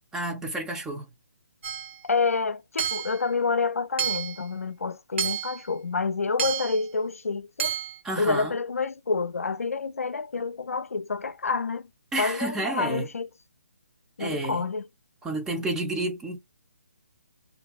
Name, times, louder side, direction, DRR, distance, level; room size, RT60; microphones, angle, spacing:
voice 1, 0.1-1.1 8.0-8.5 12.1-13.1 14.2-14.6 15.2-16.4, right 2 dB, 5° right, 0.4 m, -30 dB
Hammer / Chink clink, 1.6-2.0 2.8-3.2 4.0-4.4 5.2-5.6 6.4-6.8 7.6-8.0, right 8 dB, 55° right, 0.7 m, -30 dB
voice 2, 2.0-7.8 8.2-11.9 12.2-13.3 14.2-14.8, left 4 dB, 80° left, 0.3 m, -28 dB
2.5 x 2.2 x 2.4 m
figure-of-eight pair, 145°, 8 cm